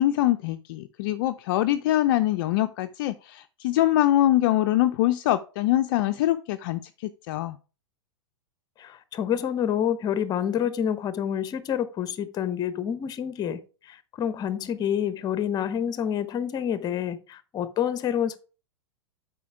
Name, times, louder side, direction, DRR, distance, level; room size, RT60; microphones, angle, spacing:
voice 1, 0.0-7.6, left 14 dB, 50° left, 0.5 m, -24 dB
voice 2, 8.8-18.4, left 9 dB, 25° left, 0.9 m, -28 dB
8.3 x 5.0 x 4.8 m
figure-of-eight pair, 95°, 15 cm